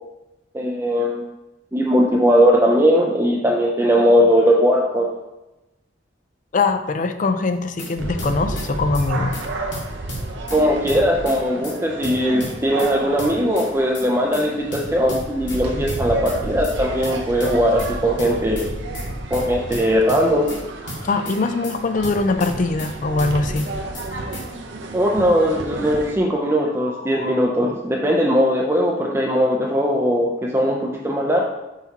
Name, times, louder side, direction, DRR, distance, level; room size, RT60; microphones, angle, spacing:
voice 1, 0.5-1.2 1.7-5.1 10.5-18.7 19.3-20.5 24.9-31.4, equal, 15° right, -2 dB, 0.5 m, -19 dB
voice 2, 6.5-9.4 21.0-23.7 27.0-27.4, left 3 dB, 45° left, 9 dB, 0.4 m, -22 dB
sound 1, 7.5-7.9 8.2-8.7 8.9-9.1 9.3-9.4 9.7-10.6 10.9-11.4 11.6-11.8 12.0-12.9 13.2-13.7 13.9-14.1 14.3-14.4 14.7-15.6 15.9-16.4 16.6-16.8 17.0-17.9 18.2-18.7 18.9-19.1 19.3-19.4 19.7-20.6 20.9-21.4 21.6-21.8 22.0-22.9 23.2-23.7 23.9-24.1 24.3-24.4, left 1 dB, 85° left, 2.0 m, -33 dB
sound 2, 8.0-26.1, right 2 dB, 70° right, 0.8 m, -31 dB
5.8 x 5.8 x 2.9 m, 0.98 s
head